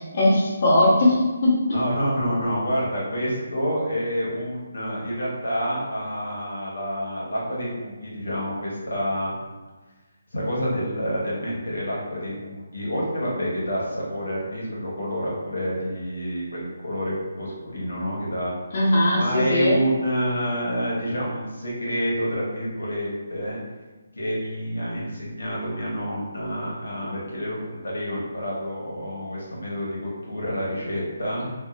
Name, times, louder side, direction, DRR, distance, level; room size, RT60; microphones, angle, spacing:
voice 1, 0.0-1.6 18.7-19.8, left 1 dB, 40° left, -8 dB, 0.8 m, -19 dB
voice 2, 1.7-9.3 10.3-18.5 19.2-23.6 24.2-31.5, equal, 80° left, -5 dB, 0.9 m, -28 dB
2.6 x 2.3 x 2.4 m, 1.3 s
figure-of-eight pair, 150°, 0 cm